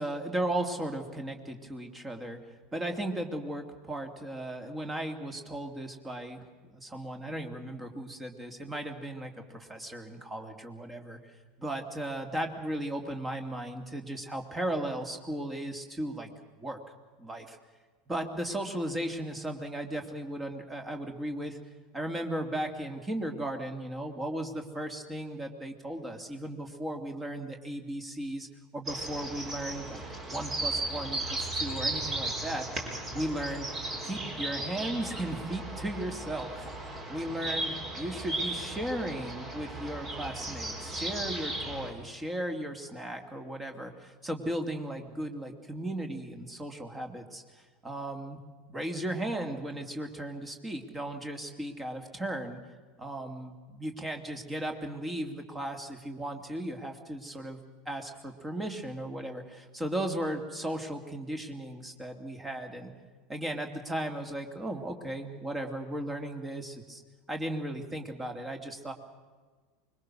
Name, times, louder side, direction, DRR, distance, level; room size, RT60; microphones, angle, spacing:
voice 1, 0.0-2.4 2.7-11.2 11.6-16.3 16.6-16.8 17.2-17.6 18.1-21.6 21.9-28.5 28.7-30.0 30.3-32.7 33.1-33.7 34.0-36.7 37.1-48.4 48.7-52.6 53.0-57.6 57.9-62.9 63.3-67.0 67.3-68.9, right 1 dB, 15° right, 5 dB, 2.7 m, -36 dB
sound 1, 28.9-41.9, right 2 dB, 30° right, 4.7 m, -36 dB
25.0 x 22.5 x 6.4 m, 1.4 s
figure-of-eight pair, 80°, 0 cm